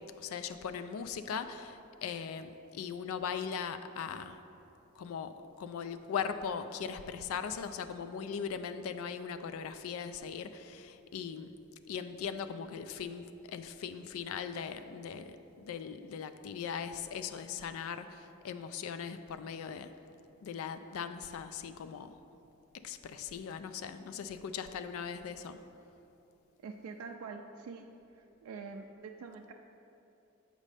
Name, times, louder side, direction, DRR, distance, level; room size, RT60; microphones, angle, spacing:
voice 1, 0.0-4.4 5.0-11.5 11.9-19.9 20.4-22.1 22.8-25.6, left 6 dB, 75° left, 10 dB, 0.3 m, -39 dB
voice 2, 26.6-27.9 28.1-29.5, right 4 dB, 85° right, 3 dB, 0.3 m, -45 dB
7.4 x 5.2 x 3.3 m, 2.9 s
head